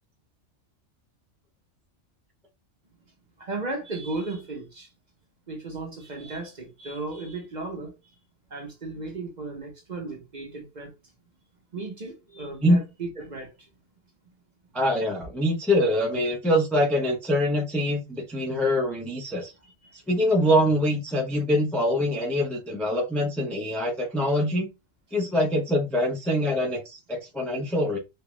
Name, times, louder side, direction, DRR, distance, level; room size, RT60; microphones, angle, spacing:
voice 1, 3.4-4.9 5.5-8.2 8.5-10.9 11.7-13.7 19.8-20.0, right 3 dB, 40° right, 0.8 m, -35 dB
voice 2, 14.7-19.5 19.9-24.7 25.1-28.0, equal, ahead, 0.3 m, -24 dB
3.3 x 2.3 x 3.0 m
omnidirectional pair, 1.4 m